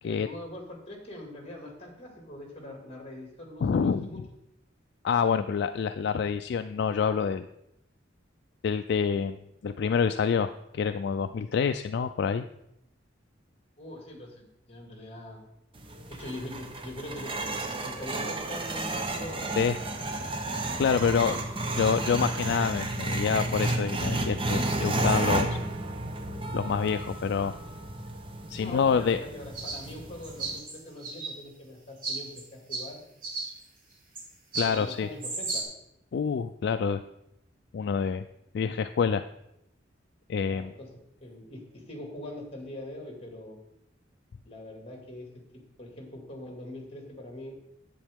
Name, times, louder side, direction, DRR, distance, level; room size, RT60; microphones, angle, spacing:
voice 1, 0.0-4.2 13.8-15.4 16.1-18.9 19.1-19.5 28.6-33.0 34.6-35.7 40.5-40.9 41.2-43.6 44.4-47.6, left 1 dB, 35° left, 1 dB, 2.2 m, -42 dB
voice 2, 3.6-4.2 5.0-7.5 8.6-12.5 19.6-19.8 20.8-21.4 21.8-25.6 26.5-27.6 28.5-29.2 34.6-35.1 36.1-37.0 37.7-38.2 38.5-39.2 40.3-40.7, left 6 dB, 65° left, 9 dB, 0.3 m, -27 dB
sound 1, 15.8-30.6, right 2 dB, 30° right, 0.8 m, -32 dB
sound 2, 29.5-29.8 30.2-31.3 32.0-32.4 32.7-32.8 33.2-33.5 34.2-34.3 34.5-34.9 35.2-35.6, right 3 dB, 50° right, 2.5 m, -33 dB
10.0 x 8.3 x 3.6 m, 0.81 s
head